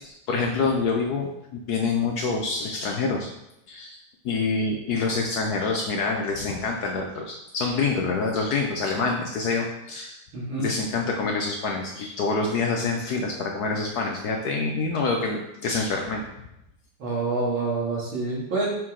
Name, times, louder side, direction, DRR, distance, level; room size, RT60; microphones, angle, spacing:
voice 1, 0.0-3.3 3.7-4.0 4.2-10.2 10.6-16.3, left 4 dB, 70° left, 1 dB, 0.9 m, -26 dB
voice 2, 10.3-10.6 17.0-18.7, right 3 dB, 65° right, -6 dB, 2.9 m, -27 dB
6.0 x 4.6 x 3.7 m, 0.84 s
omnidirectional pair, 2.4 m